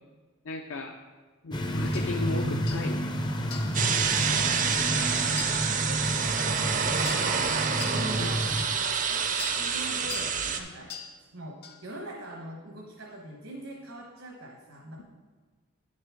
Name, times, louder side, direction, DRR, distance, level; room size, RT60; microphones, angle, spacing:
voice 1, 0.5-1.0 1.4-3.1 8.2-8.3, left 3 dB, 65° left, 3 dB, 0.5 m, -35 dB
sound 1, 1.5-8.7, equal, 20° left, 0.5 m, -31 dB
sound 2, 1.9-2.1 2.7-2.9 3.5-3.8 4.5-4.6 5.4-5.6 6.4-6.6 7.0-7.3 7.8-8.0 8.6-8.7 9.4-9.6 10.1-10.3 10.9-11.1 11.6-11.8, left 7 dB, 45° left, 0.8 m, -40 dB
sound 3, 3.7-10.6, right 6 dB, 35° right, 0.5 m, -27 dB
voice 2, 4.1-9.2 9.5-10.9 11.3-15.0, right 1 dB, 70° right, -1 dB, 1.1 m, -42 dB
10.0 x 6.7 x 3.6 m, 1.4 s
head